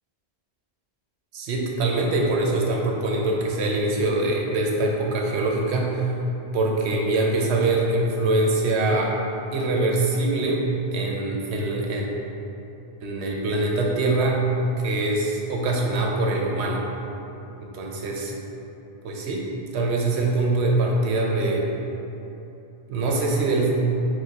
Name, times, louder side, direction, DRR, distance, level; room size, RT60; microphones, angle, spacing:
voice 1, 1.3-6.0 6.5-9.1 9.5-10.6 10.9-12.1 13.0-14.4 14.8-16.8 17.6-18.3 19.0-19.4 19.7-21.6 22.9-23.7, right 2 dB, 85° right, -1 dB, 0.9 m, -23 dB
4.6 x 2.2 x 3.9 m, 3.0 s
omnidirectional pair, 1.1 m